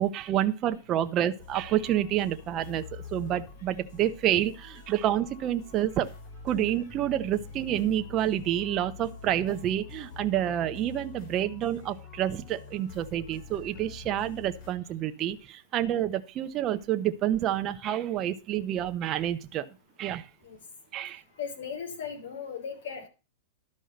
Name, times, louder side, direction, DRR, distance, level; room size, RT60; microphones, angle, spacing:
voice 1, 0.0-6.1 6.4-19.7 20.0-20.3 20.9-21.2, right 11 dB, 30° right, 8 dB, 0.8 m, -28 dB
sound 1, 1.4-14.7, left 5 dB, 40° left, 5.6 m, -46 dB
voice 2, 21.4-23.1, left 7 dB, 75° left, 6 dB, 3.6 m, -37 dB
12.0 x 5.4 x 6.5 m, 0.31 s
supercardioid pair, 150°, 0 cm